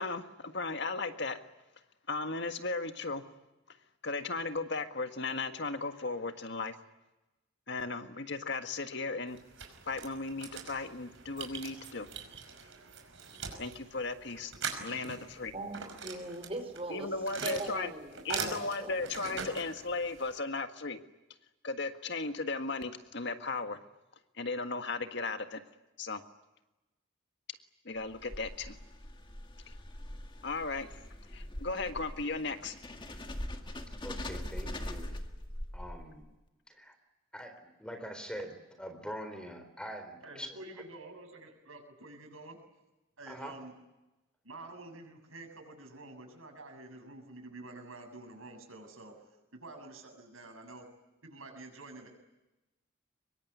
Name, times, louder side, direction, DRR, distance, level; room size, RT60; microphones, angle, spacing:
voice 1, 0.0-1.4 2.1-3.2 3.7-3.8 4.0-6.8 7.7-9.4 9.9-12.1 13.6-14.5 14.8-15.5 16.9-17.9 18.2-21.0 21.6-23.8 24.4-25.6 26.0-26.2 27.9-28.8 29.7-29.8 30.4-30.9 31.3-32.8, left 3 dB, 55° left, 7 dB, 1.7 m, -36 dB
sound 1, 9.3-20.4, right 6 dB, 65° right, 5.4 m, -43 dB
voice 2, 15.5-17.1 17.4-18.9, right 2 dB, 30° right, 5 dB, 5.0 m, -40 dB
sound 2, 28.0-36.3, left 1 dB, 25° left, 1.8 m, -42 dB
voice 3, 34.0-35.1 35.7-36.2 36.8-36.9 37.3-37.5 37.8-40.5 43.3-43.5, equal, 5° left, 7 dB, 3.9 m, -43 dB
voice 4, 40.2-42.6 43.2-43.7 44.4-49.1 49.5-50.9 51.2-52.1, right 2 dB, 90° right, 4 dB, 7.3 m, -48 dB
24.5 x 22.5 x 9.6 m, 1.0 s
head